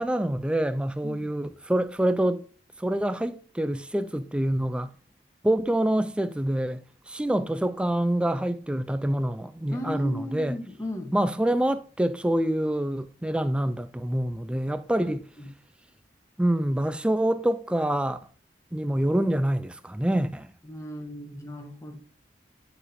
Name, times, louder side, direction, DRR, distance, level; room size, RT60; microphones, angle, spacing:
voice 1, 0.0-2.4 2.8-4.9 5.4-10.6 11.1-15.2 16.4-18.2 18.7-20.5, right 1 dB, 5° right, 0.3 m, -26 dB
voice 2, 9.7-11.1 15.0-15.1 15.4-15.5 20.6-22.0, left 1 dB, 15° left, 1.0 m, -36 dB
9.9 x 4.0 x 2.6 m
head